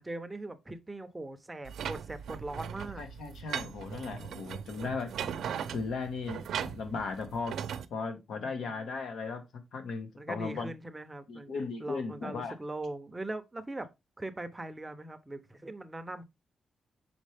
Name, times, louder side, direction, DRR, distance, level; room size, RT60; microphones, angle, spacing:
voice 1, 0.0-3.0 8.3-8.9 10.1-13.9 14.2-16.2, right 2 dB, 15° right, 0.7 m, -41 dB
sound 1, 1.7-7.9, right 8 dB, 90° right, 0.6 m, -39 dB
voice 2, 3.0-5.1 5.7-7.5 7.9-10.7 11.3-12.5, left 4 dB, 80° left, 1.5 m, -37 dB
6.4 x 4.6 x 3.4 m
wide cardioid pair, 155°, 0 cm